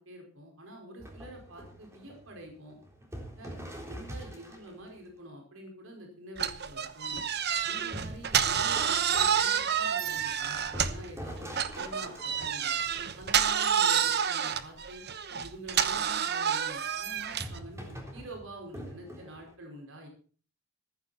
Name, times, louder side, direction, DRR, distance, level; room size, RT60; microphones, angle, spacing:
voice 1, 0.0-2.8 3.4-3.5 3.9-7.2 7.6-12.8 13.2-15.0 15.4-20.1, right 1 dB, 70° right, 2 dB, 4.9 m, -47 dB
sound 1, 1.0-5.0 7.9-13.6 17.3-19.5, equal, 15° right, 3.6 m, -44 dB
sound 2, 6.4-11.1 11.5-17.6, right 8 dB, 55° right, 1.1 m, -29 dB
14.5 x 14.5 x 4.2 m, 0.42 s
head